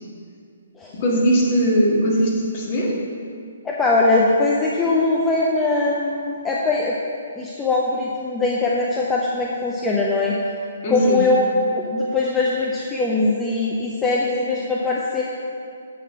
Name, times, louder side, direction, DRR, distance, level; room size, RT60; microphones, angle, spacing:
voice 1, 0.9-3.0 10.8-11.2, equal, 40° left, -3 dB, 1.8 m, -19 dB
voice 2, 3.6-6.9 7.4-10.4 10.9-15.2, left 3 dB, 15° left, -4 dB, 0.7 m, -21 dB
8.1 x 4.4 x 5.7 m, 2.3 s
figure-of-eight pair, 130°, 0 cm